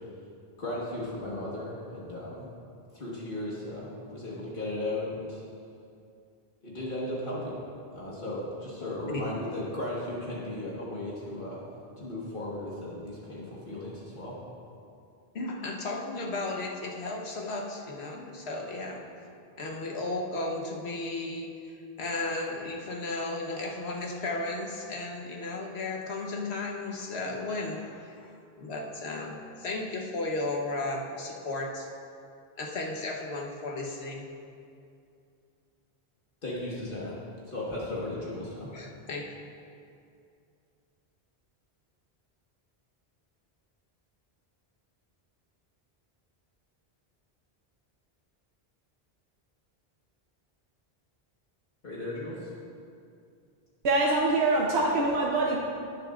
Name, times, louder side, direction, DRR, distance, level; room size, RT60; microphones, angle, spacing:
voice 1, 0.6-2.5 2.9-5.4 6.6-7.6 7.9-11.6 12.0-14.4 36.4-37.2 37.5-38.7 51.8-52.5, left 1 dB, 60° left, -6 dB, 1.6 m, -36 dB
voice 2, 15.3-19.0 19.6-21.5 22.0-28.3 28.6-31.9 32.6-34.3 38.7-39.3, left 2 dB, 85° left, 0 dB, 1.3 m, -34 dB
voice 3, 53.8-55.6, right 2 dB, 85° right, -2 dB, 1.0 m, -24 dB
17.5 x 6.9 x 2.5 m, 2.5 s
omnidirectional pair, 1.0 m